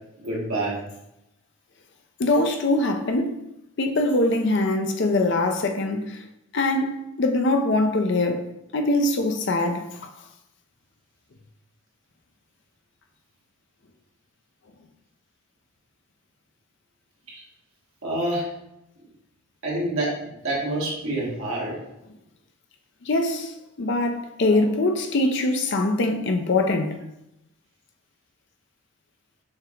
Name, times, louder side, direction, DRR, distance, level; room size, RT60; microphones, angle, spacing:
voice 1, 0.2-0.8 17.3-17.4 18.0-18.5 19.6-20.2 20.4-21.7 24.4-24.6, right 1 dB, 75° right, 1.5 m, -27 dB
voice 2, 2.2-3.4 3.8-6.2 6.5-8.5 8.7-9.9 23.0-27.0, left 2 dB, 55° left, 0.5 m, -23 dB
6.4 x 2.4 x 2.9 m
head